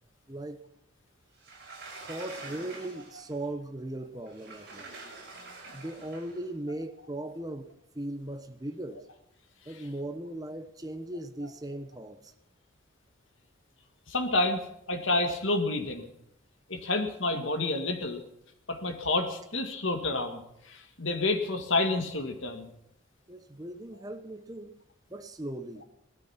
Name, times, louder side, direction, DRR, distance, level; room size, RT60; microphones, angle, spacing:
voice 1, 0.3-0.6 2.0-5.0 5.7-9.0 9.6-12.3 23.3-24.7 25.1-25.8, right 1 dB, 20° right, 8 dB, 1.1 m, -38 dB
Sliding door, 1.4-3.3 4.3-6.4, right 3 dB, 50° right, 5.6 m, -46 dB
voice 2, 14.1-14.6 14.9-16.1 16.7-18.2 18.7-22.7, left 2 dB, 75° left, 5 dB, 2.2 m, -29 dB
18.0 x 13.0 x 5.9 m, 0.80 s
head